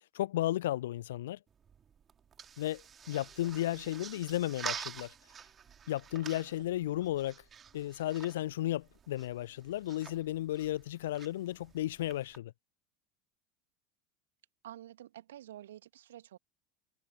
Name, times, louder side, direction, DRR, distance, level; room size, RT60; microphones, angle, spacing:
voice 1, 0.1-1.4 2.6-5.1 5.9-7.4 7.7-12.5, left 14 dB, 65° left, 0.4 m, -34 dB
sound 1, 1.5-12.4, right 7 dB, 30° right, 2.9 m, -48 dB
voice 2, 3.5-4.1 6.2-6.5 14.6-16.4, right 12 dB, 70° right, 2.2 m, -51 dB
figure-of-eight pair, 75°, 0 cm